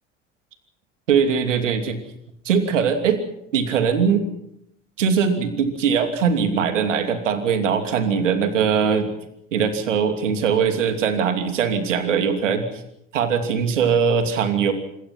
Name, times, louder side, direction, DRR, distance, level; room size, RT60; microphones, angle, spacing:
voice 1, 1.1-2.0 2.4-3.2 3.5-4.2 5.0-9.1 9.5-12.8 13.1-14.7, right 6 dB, 80° right, 7 dB, 2.8 m, -21 dB
26.5 x 22.5 x 5.9 m, 0.77 s
figure-of-eight pair, 60°, 37 cm